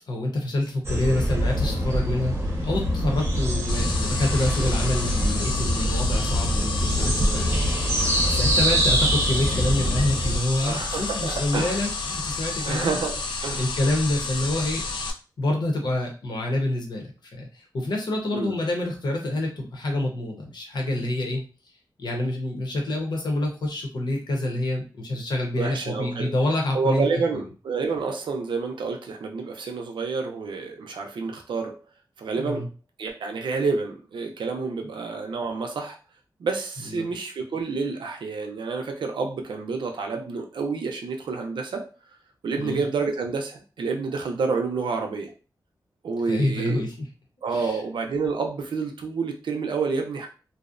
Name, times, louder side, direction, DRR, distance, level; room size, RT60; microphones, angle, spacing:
voice 1, 0.1-2.3 2.6-7.9 8.3-13.0 13.6-14.8 15.4-21.4 22.0-27.2 32.3-32.7 36.9-37.1 42.6-42.8 46.3-47.1 47.5-47.8, left 1 dB, 65° left, 1 dB, 0.8 m, -27 dB
sound 1, 0.8-10.4, equal, 35° right, 0.6 m, -24 dB
sound 2, 3.7-15.1, left 3 dB, 80° left, 0.4 m, -31 dB
voice 2, 10.6-11.8 12.6-13.7 18.3-18.6 25.6-26.3 26.7-31.8 32.2-32.6 33.0-36.0 36.4-41.9 42.4-45.3 46.0-46.8 47.4-50.3, right 4 dB, 85° right, 3 dB, 0.5 m, -29 dB
2.6 x 2.0 x 2.5 m, 0.35 s
wide cardioid pair, 145°, 8 cm